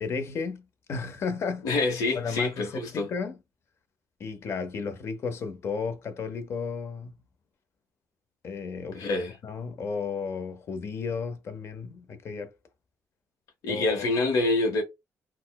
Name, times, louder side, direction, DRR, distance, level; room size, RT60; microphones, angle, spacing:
voice 1, 0.0-0.6 0.9-1.7 2.1-3.4 4.2-7.2 8.4-9.1 9.4-12.5 13.7-14.1, left 5 dB, 45° left, 0.6 m, -33 dB
voice 2, 1.6-3.1 8.9-9.4 13.6-14.8, left 2 dB, 80° left, 0.8 m, -26 dB
4.1 x 2.0 x 2.2 m
cardioid pair, 135°, 6 cm